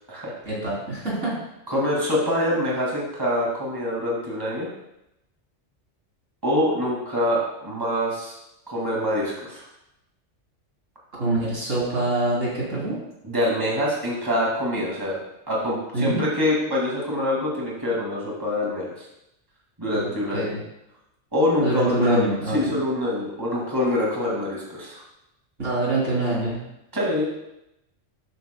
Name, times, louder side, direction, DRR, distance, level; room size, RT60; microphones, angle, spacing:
voice 1, 0.5-1.3 11.2-13.0 15.9-16.2 19.9-20.6 21.6-22.7 25.6-26.7, right 2 dB, 85° right, -6 dB, 4.0 m, -25 dB
voice 2, 1.7-4.7 6.4-8.3 8.7-9.7 13.2-19.1 19.8-20.5 21.3-25.0 26.9-27.2, left 1 dB, 20° right, -4 dB, 2.3 m, -25 dB
11.5 x 9.2 x 2.3 m, 0.85 s
omnidirectional pair, 1.2 m